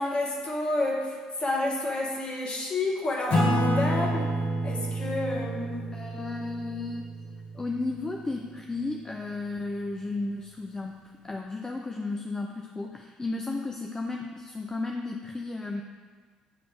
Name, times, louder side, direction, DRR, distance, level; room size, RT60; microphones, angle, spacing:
voice 1, 0.0-4.3 4.6-6.0, left 2 dB, 35° left, -1 dB, 1.5 m, -30 dB
Acoustic guitar / Strum, 3.3-8.3, right 1 dB, 55° left, 1.5 m, -29 dB
voice 2, 5.9-7.1 7.5-15.8, left 3 dB, 20° left, 1 dB, 0.5 m, -34 dB
9.1 x 3.1 x 4.6 m, 1.5 s
figure-of-eight pair, 55°, 3 cm